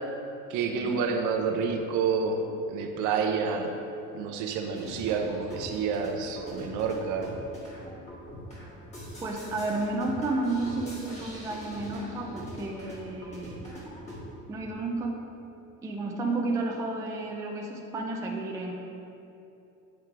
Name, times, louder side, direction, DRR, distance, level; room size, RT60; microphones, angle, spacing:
voice 1, 0.5-3.7 4.1-7.3, right 5 dB, 60° right, 4 dB, 0.7 m, -29 dB
sound 1, 4.7-14.2, equal, 20° left, 1.5 m, -43 dB
voice 2, 9.2-13.7 14.5-15.2 15.8-18.7, right 2 dB, 10° right, 0 dB, 0.3 m, -32 dB
8.7 x 3.6 x 4.5 m, 2.9 s
cardioid pair, 155°, 34 cm